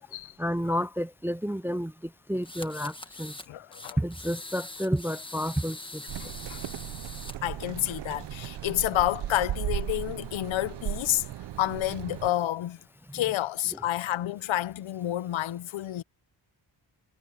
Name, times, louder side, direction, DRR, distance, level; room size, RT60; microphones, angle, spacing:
voice 1, 0.4-1.9 2.3-3.3 4.0-6.0, equal, 5° right, 0.4 m, -30 dB
sound 1, 2.4-3.5 3.7-7.3, left 2 dB, 10° left, 1.3 m, -43 dB
voice 2, 3.5-4.0 6.2-6.6 7.4-11.3 11.6-12.8 13.1-16.0, left 14 dB, 80° left, 0.7 m, -29 dB
sound 2, 6.1-12.3, right 13 dB, 60° right, 0.6 m, -36 dB
wide cardioid pair, 125°, 46 cm